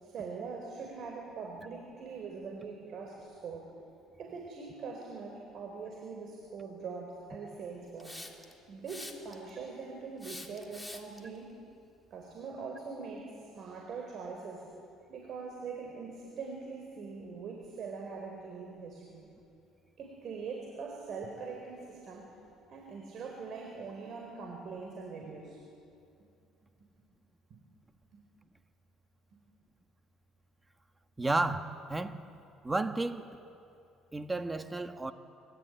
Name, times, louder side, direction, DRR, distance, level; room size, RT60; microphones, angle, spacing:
voice 1, 0.0-3.7 4.2-8.2 8.7-11.6 12.1-14.7 15.1-19.3 20.0-22.3 22.7-25.6 27.5-27.6 28.1-28.2 29.3-29.4, right 4 dB, 55° right, 4.6 m, -42 dB
Hiss, 8.0-8.5 8.9-9.5 10.2-11.2, left 1 dB, 5° left, 3.0 m, -45 dB
voice 2, 31.2-32.2 32.6-33.3 34.1-35.1, right 2 dB, 15° right, 1.5 m, -32 dB
25.5 x 24.0 x 9.4 m
cardioid pair, 110°, 0 cm